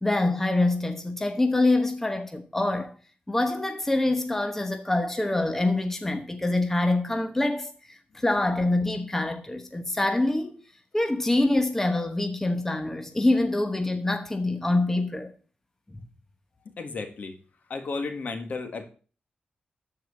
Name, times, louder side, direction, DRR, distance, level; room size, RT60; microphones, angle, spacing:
voice 1, 0.0-2.9 3.3-10.6 10.9-15.3 15.9-16.0, left 2 dB, 10° left, 1.0 m, -25 dB
voice 2, 16.8-17.4 17.7-18.8, left 4 dB, 55° left, 1.7 m, -33 dB
13.0 x 4.8 x 7.1 m
wide cardioid pair, 135°, 3 cm